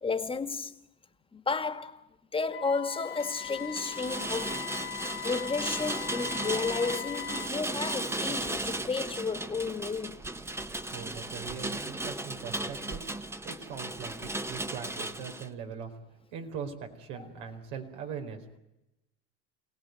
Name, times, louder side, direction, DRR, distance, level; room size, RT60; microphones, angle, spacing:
voice 1, 0.0-0.7 1.3-2.0 2.3-4.6 5.2-10.2, left 4 dB, 15° left, 1.8 m, -32 dB
Wind instrument woodwind instrument, 2.5-7.6, left 12 dB, 45° left, 1.0 m, -40 dB
Rain, 3.1-15.5, right 2 dB, 10° right, 1.2 m, -36 dB
voice 2, 10.6-13.1 13.4-15.9 16.3-18.4, right 7 dB, 80° right, 4.5 m, -41 dB
27.0 x 17.5 x 9.4 m
supercardioid pair, 115°, 31 cm